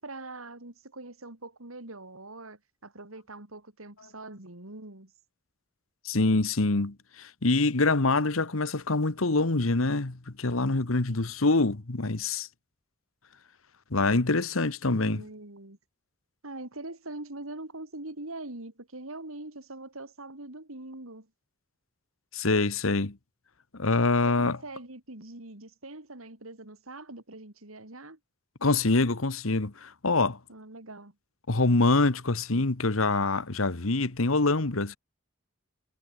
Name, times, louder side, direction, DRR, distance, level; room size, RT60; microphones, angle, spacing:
voice 1, 0.0-5.1 14.9-15.8 16.4-21.3 24.3-28.2 30.5-31.1, right 2 dB, 85° right, 3.8 m, -43 dB
voice 2, 6.0-12.5 13.9-15.2 22.3-23.2 23.7-24.6 28.6-30.4 31.5-35.0, left 3 dB, 80° left, 1.5 m, -25 dB
head